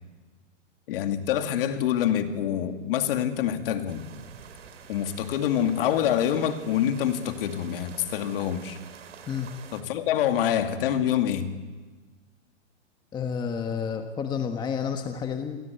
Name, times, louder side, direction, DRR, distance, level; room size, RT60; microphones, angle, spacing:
voice 1, 0.9-4.1 4.9-8.8 9.7-11.5, left 10 dB, 50° left, 7 dB, 2.5 m, -26 dB
sound 1, 3.9-9.8, right 7 dB, 75° right, 3.8 m, -47 dB
voice 2, 13.1-15.6, left 7 dB, 10° left, 6 dB, 1.3 m, -30 dB
29.0 x 21.5 x 8.4 m, 1.4 s
hypercardioid pair, 150°, 36 cm